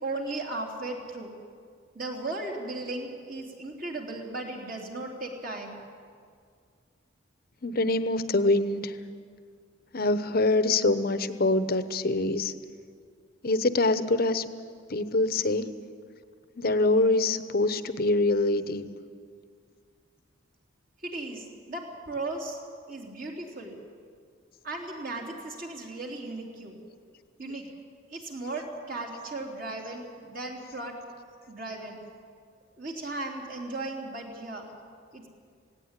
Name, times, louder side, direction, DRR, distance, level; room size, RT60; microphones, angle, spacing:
voice 1, 0.0-1.3 1.9-5.8 21.0-22.6 22.9-23.8 24.6-26.8 27.4-27.6 28.1-31.0 31.5-32.0 32.8-34.7 35.1-35.3, right 2 dB, 45° right, 0 dB, 3.2 m, -36 dB
voice 2, 7.6-9.0 9.9-12.5 13.4-14.4 14.9-15.7 16.5-18.9, left 2 dB, 50° left, 12 dB, 0.9 m, -24 dB
18.0 x 16.5 x 9.8 m, 2.1 s
head